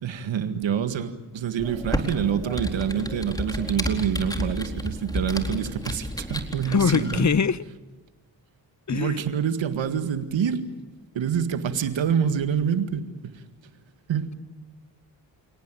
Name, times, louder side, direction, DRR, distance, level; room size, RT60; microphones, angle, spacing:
voice 1, 0.0-7.3 8.9-10.7 11.1-13.4 14.1-14.3, right 8 dB, 80° right, 2.0 m, -26 dB
Computer keyboard, 1.6-7.4, equal, 10° left, 4.2 m, -31 dB
voice 2, 6.7-7.6 8.9-9.2, left 6 dB, 40° left, 1.0 m, -22 dB
29.5 x 18.0 x 9.2 m
supercardioid pair, 45°, 45 cm